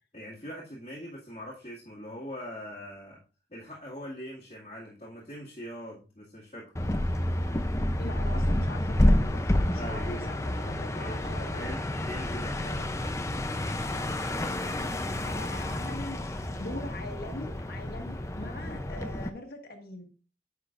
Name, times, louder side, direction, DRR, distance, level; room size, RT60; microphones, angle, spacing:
voice 1, 0.1-3.2 3.5-6.7 9.8-10.3 10.9-12.7, equal, 35° left, 2.0 m, -42 dB
sound 1, 6.8-19.3, left 1 dB, 15° left, 0.5 m, -29 dB
voice 2, 8.0-11.7 12.6-12.9 15.2-20.1, left 1 dB, 55° left, 1.4 m, -42 dB
9.9 x 5.9 x 2.5 m
head